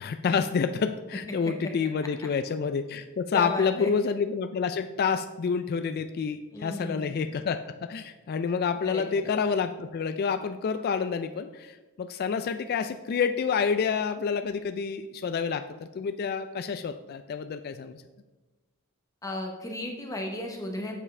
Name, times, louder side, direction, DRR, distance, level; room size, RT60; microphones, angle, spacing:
voice 1, 0.0-18.0, left 6 dB, 45° left, 9 dB, 0.3 m, -28 dB
voice 2, 3.3-3.9 6.5-7.2 8.9-9.3 19.2-20.9, left 1 dB, 15° left, 1 dB, 0.9 m, -35 dB
7.2 x 7.1 x 3.3 m, 1.1 s
head